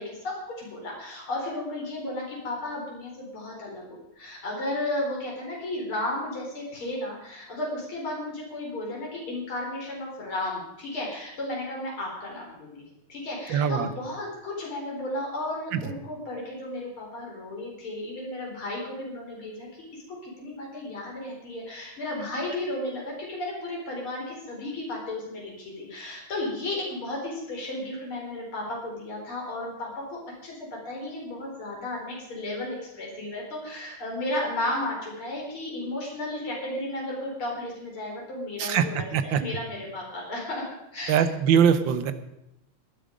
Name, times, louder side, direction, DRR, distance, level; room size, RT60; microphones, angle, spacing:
voice 1, 0.0-12.8 13.1-41.3, left 1 dB, 85° left, -2 dB, 5.0 m, -34 dB
voice 2, 13.5-13.9 38.6-38.8 39.1-39.4 41.1-42.1, right 8 dB, 70° right, 11 dB, 1.7 m, -22 dB
18.0 x 11.0 x 5.2 m, 0.85 s
omnidirectional pair, 2.3 m